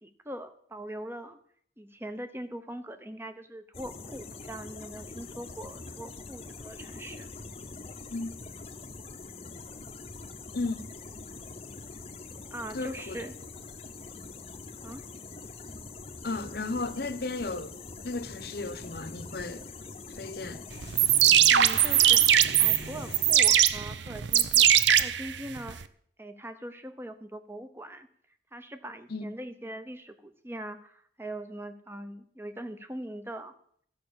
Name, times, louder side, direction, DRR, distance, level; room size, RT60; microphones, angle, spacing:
voice 1, 0.0-1.4 1.8-7.3 12.5-13.3 14.8-15.1 21.5-25.8 26.2-28.1 28.5-33.5, right 1 dB, 10° right, 0.9 m, -41 dB
sound 1, 3.7-23.4, left 3 dB, 30° left, 0.8 m, -44 dB
voice 2, 10.5-10.9 12.7-13.2 16.2-17.8 18.0-19.7 20.2-20.6 29.1-29.3, left 3 dB, 55° left, 0.9 m, -34 dB
sound 2, 20.8-25.8, right 10 dB, 70° right, 0.6 m, -21 dB
13.5 x 6.1 x 8.7 m
head